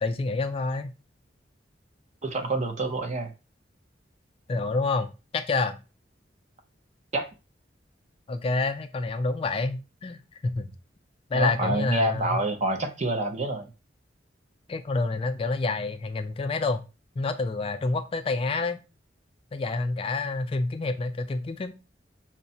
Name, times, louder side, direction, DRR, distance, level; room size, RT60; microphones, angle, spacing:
voice 1, 0.0-0.9 4.5-5.8 8.3-10.7 11.3-12.4 14.7-16.8 17.2-18.8 19.5-21.7, left 3 dB, 30° left, 0.3 m, -28 dB
voice 2, 2.2-3.3 7.1-7.3 11.3-13.7, right 2 dB, 40° right, 0.6 m, -27 dB
5.6 x 2.1 x 2.6 m
head